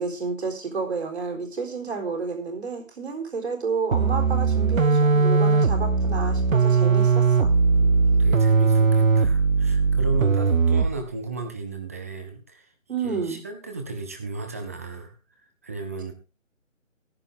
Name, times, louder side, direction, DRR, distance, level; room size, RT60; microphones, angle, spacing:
voice 1, 0.0-7.5 12.9-13.4, right 4 dB, 55° right, 3 dB, 4.1 m, -30 dB
sound 1, 3.9-11.1, right 4 dB, 80° right, 1.3 m, -19 dB
voice 2, 7.8-12.7 13.0-15.1 15.6-16.1, right 3 dB, 10° right, 7 dB, 0.8 m, -34 dB
14.5 x 10.5 x 3.6 m, 0.31 s
figure-of-eight pair, 160°, 39 cm